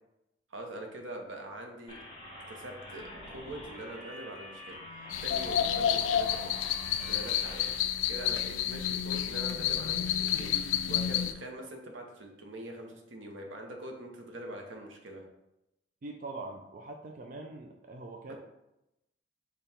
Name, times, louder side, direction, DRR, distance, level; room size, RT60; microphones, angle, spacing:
voice 1, 0.5-2.0 2.5-6.5 7.1-7.7 8.1-15.2 18.3-18.4, right 1 dB, 85° right, 2 dB, 0.8 m, -43 dB
sound 1, 1.9-7.8, left 1 dB, 25° left, 1.0 m, -46 dB
sound 2, 5.1-11.3, left 9 dB, 85° left, 0.3 m, -30 dB
voice 2, 16.0-18.4, right 3 dB, 45° right, 3 dB, 0.4 m, -43 dB
5.1 x 2.3 x 4.2 m, 0.89 s
head